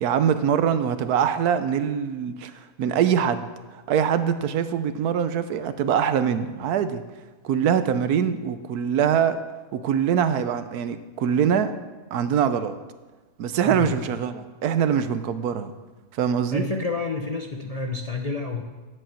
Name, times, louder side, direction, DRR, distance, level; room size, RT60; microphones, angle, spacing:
voice 1, 0.0-3.4 3.7-7.0 7.4-9.4 9.7-11.7 12.1-12.7 13.4-15.7 16.1-16.6, right 8 dB, 80° right, 11 dB, 1.2 m, -23 dB
voice 2, 13.6-13.9 16.5-18.6, left 3 dB, 35° left, 2 dB, 0.6 m, -29 dB
9.9 x 7.9 x 7.5 m, 1.2 s
omnidirectional pair, 1.6 m